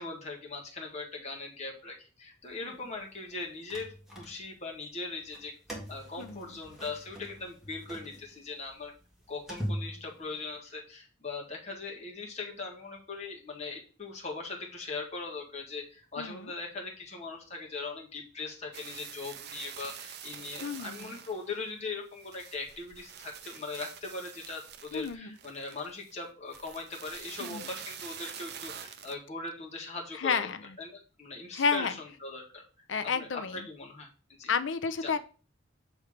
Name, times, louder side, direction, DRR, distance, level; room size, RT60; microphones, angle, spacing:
voice 1, 0.0-5.5 5.9-8.9 9.3-32.6 33.0-34.1 34.4-34.5 35.0-35.2, left 3 dB, 35° left, -1 dB, 1.6 m, -40 dB
sound 1, 3.3-4.7 5.2-10.6, equal, ahead, 1.6 m, -41 dB
voice 2, 16.2-16.5 20.6-21.2 24.9-25.3 27.4-27.7 30.1-30.6 31.5-31.9 32.9-33.6 34.5-35.2, left 5 dB, 65° left, 11 dB, 0.6 m, -31 dB
sound 2, 18.7-21.6 22.1-26.1 26.5-29.1, right 8 dB, 55° right, 0.6 m, -46 dB
7.2 x 3.2 x 4.9 m, 0.37 s
head